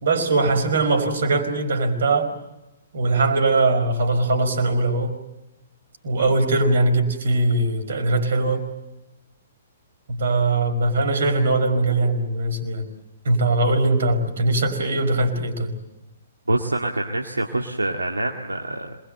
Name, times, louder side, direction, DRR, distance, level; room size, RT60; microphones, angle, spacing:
voice 1, 0.0-2.3 2.9-5.1 6.0-8.7 10.1-12.9 13.3-15.7, right 2 dB, 60° right, 7 dB, 5.2 m, -21 dB
voice 2, 16.5-19.0, right 2 dB, 80° right, 2 dB, 1.9 m, -25 dB
27.0 x 21.5 x 7.8 m, 0.94 s
figure-of-eight pair, 120°, 0 cm